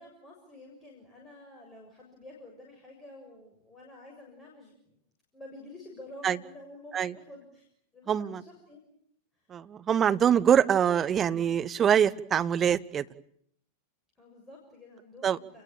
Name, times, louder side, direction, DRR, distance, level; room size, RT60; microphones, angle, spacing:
voice 1, 0.0-5.0 5.3-7.7 7.9-8.8 9.3-9.5 14.2-15.6, left 2 dB, 10° left, -1 dB, 7.1 m, -50 dB
voice 2, 8.1-8.4 9.5-13.0 15.2-15.4, right 8 dB, 25° right, 12 dB, 1.1 m, -24 dB
30.0 x 21.5 x 8.9 m, 0.68 s
figure-of-eight pair, 90°, 0 cm